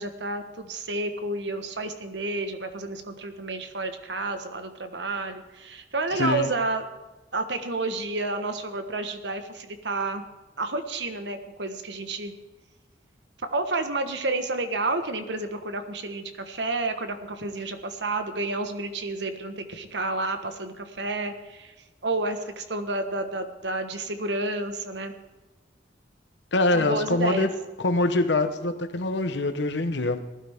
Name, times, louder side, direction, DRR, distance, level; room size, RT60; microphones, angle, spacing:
voice 1, 0.0-6.8 7.3-10.2 10.6-12.3 13.5-21.7 22.0-25.2 26.7-27.5, right 2 dB, 65° right, 7 dB, 1.4 m, -30 dB
voice 2, 6.1-6.5 26.5-27.5 27.8-30.2, left 2 dB, 65° left, 9 dB, 1.1 m, -24 dB
19.0 x 12.0 x 3.6 m, 1.2 s
head